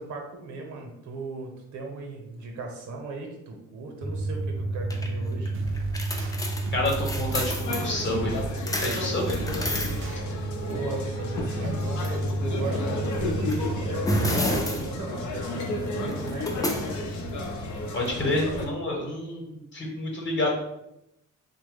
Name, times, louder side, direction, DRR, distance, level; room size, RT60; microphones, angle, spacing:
voice 1, 0.0-5.5 10.6-16.5, right 3 dB, 70° right, 2 dB, 0.8 m, -37 dB
sound 1, 4.0-18.7, right 1 dB, 10° left, 0.4 m, -31 dB
sound 2, 5.5-6.3 6.6-7.6 8.1-8.9 9.2-10.2, right 4 dB, 45° right, 0.5 m, -36 dB
voice 2, 6.7-8.5 8.8-9.4 17.9-20.6, left 2 dB, 40° left, 0 dB, 1.0 m, -28 dB
sound 3, 7.6-18.7, left 2 dB, 75° left, 0.6 m, -33 dB
3.0 x 2.2 x 3.4 m, 0.82 s
cardioid pair, 90°, 30 cm